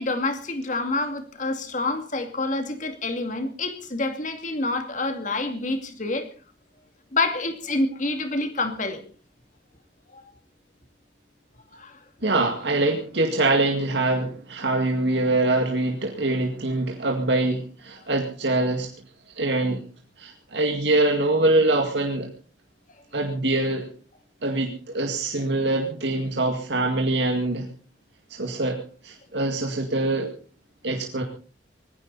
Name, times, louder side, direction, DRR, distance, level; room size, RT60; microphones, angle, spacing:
voice 1, 0.0-6.3 7.1-9.0 10.1-10.2 11.7-12.0, left 2 dB, 40° left, 7 dB, 2.4 m, -27 dB
voice 2, 12.2-18.9 19.4-19.8 20.2-22.3 23.1-23.9 24.4-27.7 28.3-30.3 30.8-31.2, right 2 dB, 70° right, 2 dB, 2.1 m, -24 dB
19.5 x 15.5 x 4.1 m, 0.39 s
head